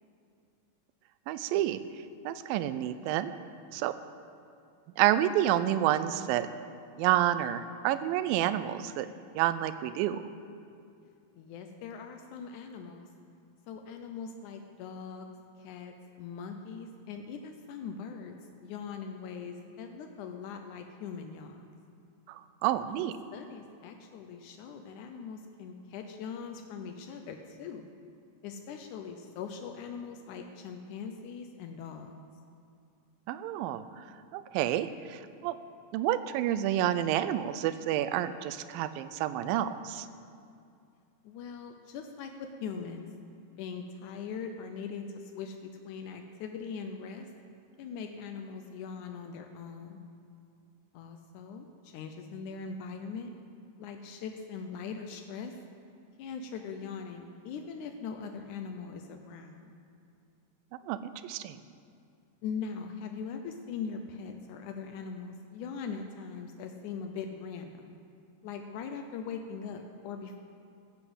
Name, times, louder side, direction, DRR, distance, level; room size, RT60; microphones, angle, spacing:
voice 1, 1.3-1.8 2.2-3.3 3.7-3.9 5.0-6.5 7.0-9.1 9.3-10.2 22.3-23.1 33.3-34.0 34.3-35.6 35.9-40.1 60.9-61.6, right 12 dB, 80° right, 12 dB, 2.1 m, -29 dB
voice 2, 11.3-13.1 13.7-15.3 15.6-18.3 18.6-21.8 22.9-23.1 23.3-27.9 28.4-32.2 41.2-43.1 43.6-47.3 47.8-50.0 50.9-53.3 53.8-55.5 56.2-59.6 62.4-67.9 68.4-70.4, left 6 dB, 90° left, 5 dB, 1.7 m, -41 dB
14.5 x 8.2 x 7.9 m, 2.5 s
omnidirectional pair, 4.4 m